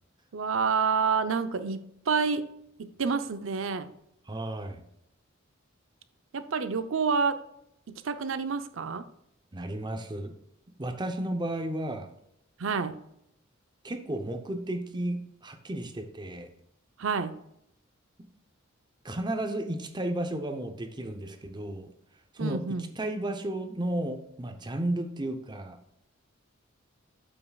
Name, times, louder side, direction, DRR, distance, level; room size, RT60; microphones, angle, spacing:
voice 1, 0.3-2.5 2.8-3.9 6.3-7.4 7.9-9.0 12.6-13.0 17.0-17.4 22.4-22.9, right 5 dB, 70° right, 11 dB, 0.6 m, -28 dB
voice 2, 4.3-4.8 9.5-10.3 10.8-12.1 13.8-16.5 19.0-21.9 22.3-22.6 23.0-25.8, right 1 dB, 20° right, 6 dB, 0.7 m, -33 dB
8.5 x 7.1 x 2.3 m, 0.76 s
head